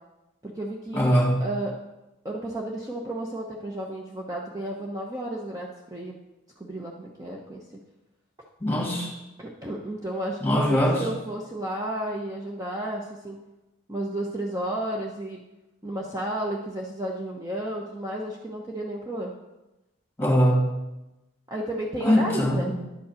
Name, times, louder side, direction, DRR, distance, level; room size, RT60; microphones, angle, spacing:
voice 1, 0.4-1.8 2.2-6.1 6.6-7.6 9.4-13.4 13.9-15.4 15.8-19.3 21.5-22.7, right 1 dB, 20° right, -2 dB, 0.9 m, -32 dB
voice 2, 0.9-1.4 8.6-9.1 10.4-11.0 20.2-20.7 22.0-22.7, equal, 10° left, -1 dB, 2.3 m, -22 dB
10.5 x 5.3 x 6.9 m, 0.99 s
head